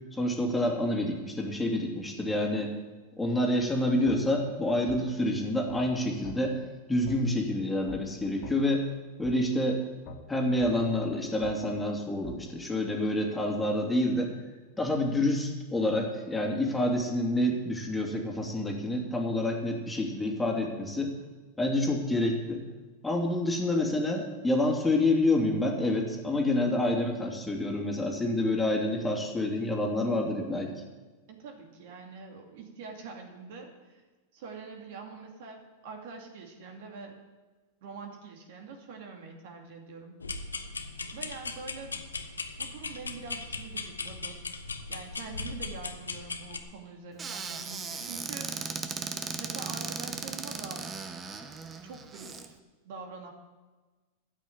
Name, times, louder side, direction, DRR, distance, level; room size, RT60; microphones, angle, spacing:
voice 1, 0.1-2.7 3.2-6.6 6.9-8.9 9.2-9.8 10.3-14.3 14.8-21.1 21.6-22.6 23.0-30.7, left 1 dB, 10° left, 0 dB, 2.7 m, -28 dB
sound 1, 4.1-4.2 4.9-5.0 5.7-5.8 6.2-6.4 7.1-7.2 7.9-8.0 8.4-8.6 9.2-9.4 10.1-10.2 10.6-10.7 11.4-11.6 12.2-12.4, left 3 dB, 50° left, 2.2 m, -43 dB
voice 2, 31.3-34.0 34.3-37.2 37.8-40.2 41.1-42.0 42.6-44.4 44.9-48.5 49.4-50.9 51.8-52.5 52.8-53.3, right 4 dB, 60° right, 2 dB, 2.5 m, -44 dB
sound 2, 40.2-46.6, left 4 dB, 90° left, 1.0 m, -38 dB
Squeak / Cupboard open or close, 47.2-52.5, right 5 dB, 25° right, 1.2 m, -37 dB
13.5 x 6.3 x 8.6 m, 1.3 s
hypercardioid pair, 95°, 0 cm